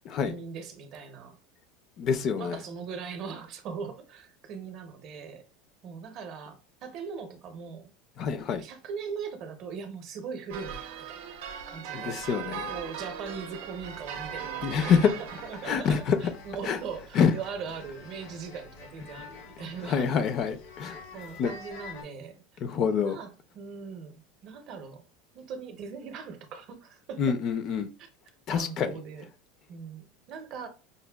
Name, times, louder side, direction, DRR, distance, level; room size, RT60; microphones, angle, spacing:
voice 1, 0.2-1.4 2.4-5.4 5.8-7.9 8.6-11.4 11.7-12.2 12.7-15.1 15.4-20.1 21.1-22.4 23.0-25.0 25.3-27.2 28.0-28.1 28.5-29.3 29.7-30.7, right 6 dB, 40° right, 0.6 m, -40 dB
voice 2, 2.0-2.6 8.2-8.6 11.9-12.7 14.6-15.1 15.7-16.2 16.7-16.8 17.1-17.3 19.8-21.0 21.4-21.5 22.6-23.2 27.2-27.9 28.5-29.0, left 6 dB, 35° left, 0.4 m, -26 dB
sound 1, 10.5-15.9, right 8 dB, 80° right, 0.6 m, -39 dB
sound 2, 13.8-22.0, left 4 dB, 85° left, 1.4 m, -48 dB
5.0 x 2.1 x 2.2 m
supercardioid pair, 165°, 0 cm